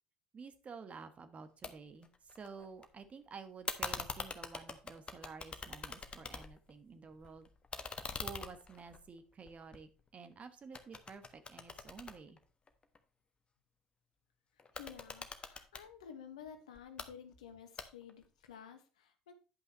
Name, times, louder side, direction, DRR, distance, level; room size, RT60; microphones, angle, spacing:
voice 1, 0.3-2.1 2.4-7.5 8.2-12.4, right 5 dB, 40° right, 10 dB, 1.4 m, -51 dB
sound 1, 1.6-1.7 2.0-2.9 3.7-6.7 7.1-10.3 10.7-13.0 14.6-15.9 16.7-17.1 17.8-18.2, left 4 dB, 30° left, 1.2 m, -44 dB
voice 2, 14.7-19.3, left 8 dB, 85° left, 8 dB, 1.2 m, -52 dB
9.8 x 5.6 x 4.2 m, 0.35 s
hypercardioid pair, 60°, 4 cm